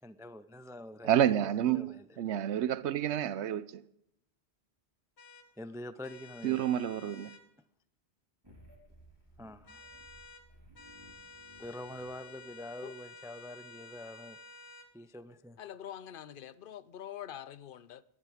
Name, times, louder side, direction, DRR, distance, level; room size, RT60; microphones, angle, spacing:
voice 1, 0.0-2.1 5.6-6.7 9.4-9.8 11.6-14.4 14.9-15.6, left 1 dB, 5° right, 0.3 m, -45 dB
voice 2, 1.0-3.8 6.4-7.3, right 11 dB, 85° right, 1.0 m, -29 dB
sound 1, 5.2-5.5 6.0-7.4 9.6-10.4 10.7-14.9, left 3 dB, 75° left, 1.8 m, -52 dB
sound 2, 8.4-12.6, equal, 20° right, 3.7 m, -59 dB
voice 3, 15.6-18.0, left 10 dB, 55° left, 0.8 m, -45 dB
18.5 x 11.0 x 5.0 m
omnidirectional pair, 1.1 m